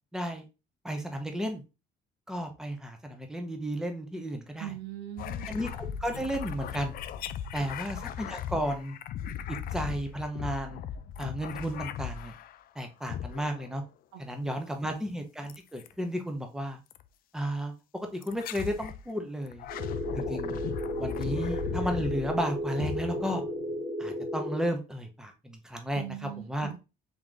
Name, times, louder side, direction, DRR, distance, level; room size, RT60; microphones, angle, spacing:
voice 1, 0.1-0.4 0.8-1.6 2.3-4.7 5.5-6.9 7.5-9.0 9.5-10.8 11.2-12.3 12.7-13.8 14.2-16.8 17.3-19.7 20.1-20.7 21.0-23.4 24.0-26.7, equal, 5° right, 4 dB, 0.9 m, -33 dB
voice 2, 4.6-5.5 7.6-7.7 14.1-14.2 14.8-14.9 26.0-26.8, right 13 dB, 85° right, 8 dB, 0.7 m, -41 dB
sound 1, 5.2-12.6 13.0-13.8 15.5-15.9 16.9-17.1 18.2-19.0 19.5-23.8, left 9 dB, 60° left, 0.4 m, -38 dB
sound 2, 19.7-24.7, equal, 25° right, 1.4 m, -34 dB
3.8 x 2.9 x 3.6 m, 0.29 s
cardioid pair, 110°, 17 cm